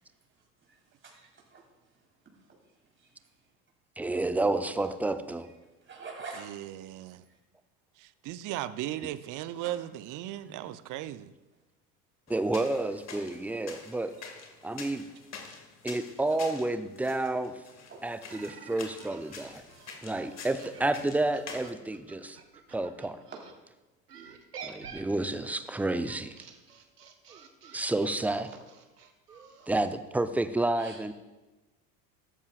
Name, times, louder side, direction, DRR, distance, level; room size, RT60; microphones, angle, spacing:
voice 1, 1.0-1.6 5.9-6.5 9.6-9.7 10.4-10.5 14.2-14.3 16.3-16.4 17.9-18.0 30.8-31.0, right 4 dB, 25° right, -1 dB, 4.1 m, -45 dB
voice 2, 4.0-5.5 12.3-14.1 14.6-15.0 15.8-17.5 18.0-19.6 20.0-22.4 22.7-23.2 24.6-26.3 27.7-28.5 29.7-31.1, right 2 dB, 5° right, 11 dB, 0.6 m, -30 dB
voice 3, 6.4-7.2 8.0-11.3 29.6-29.7, right 13 dB, 40° right, 14 dB, 0.7 m, -37 dB
sound 1, 12.3-21.7, left 5 dB, 35° left, 2.1 m, -47 dB
sound 2, 18.3-23.5 24.1-29.9, right 6 dB, 90° right, 1.2 m, -49 dB
14.0 x 13.0 x 2.5 m, 1.1 s
hypercardioid pair, 75°, 46 cm